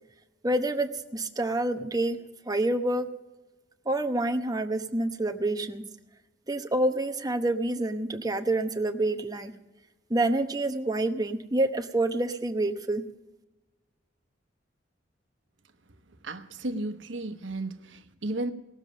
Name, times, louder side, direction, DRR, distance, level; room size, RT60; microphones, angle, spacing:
voice 1, 0.4-2.2 2.5-3.1 3.9-5.9 6.5-9.5 10.1-13.0, right 1 dB, 20° right, 6 dB, 0.9 m, -27 dB
voice 2, 16.2-18.5, right 2 dB, 90° right, 9 dB, 1.1 m, -34 dB
18.5 x 7.3 x 8.4 m, 1.1 s
head